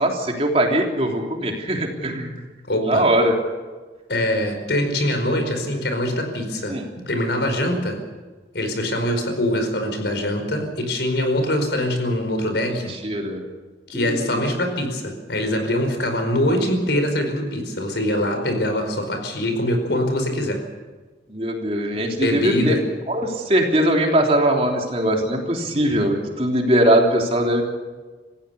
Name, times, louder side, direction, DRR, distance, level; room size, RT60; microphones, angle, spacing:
voice 1, 0.0-2.3 2.8-3.3 6.7-6.8 13.0-13.4 13.9-14.4 16.5-16.6 21.3-22.8 23.1-27.6, right 1 dB, 35° right, 1 dB, 3.3 m, -21 dB
voice 2, 2.7-3.1 4.1-8.0 8.5-12.9 13.9-20.6 22.1-22.8, left 1 dB, 80° left, 6 dB, 4.9 m, -23 dB
28.0 x 15.5 x 7.0 m, 1.3 s
head